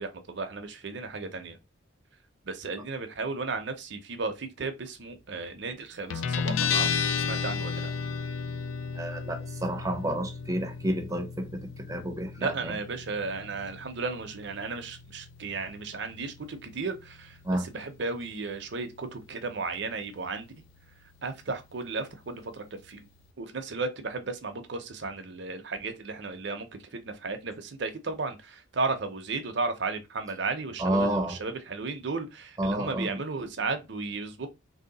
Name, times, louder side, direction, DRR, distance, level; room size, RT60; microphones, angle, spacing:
voice 1, 0.0-1.6 2.5-7.9 12.4-17.3 17.6-20.5 21.2-23.0 23.4-26.7 26.9-34.5, right 3 dB, 60° right, 0.7 m, -34 dB
Guitar, 6.1-23.3, left 6 dB, 75° left, 0.4 m, -35 dB
voice 2, 8.9-12.8 17.4-17.6 30.8-31.4 32.6-33.2, right 1 dB, 15° right, 0.6 m, -30 dB
3.0 x 2.8 x 4.0 m
head